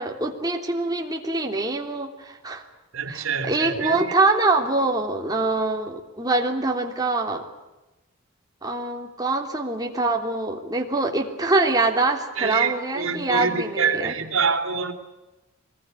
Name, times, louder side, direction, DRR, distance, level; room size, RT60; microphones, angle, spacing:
voice 1, 0.0-2.6 3.1-7.5 8.6-14.1, right 2 dB, 20° right, 3.2 m, -24 dB
voice 2, 2.9-4.0 12.4-14.9, right 5 dB, 75° right, 3.3 m, -25 dB
24.5 x 20.5 x 9.8 m
head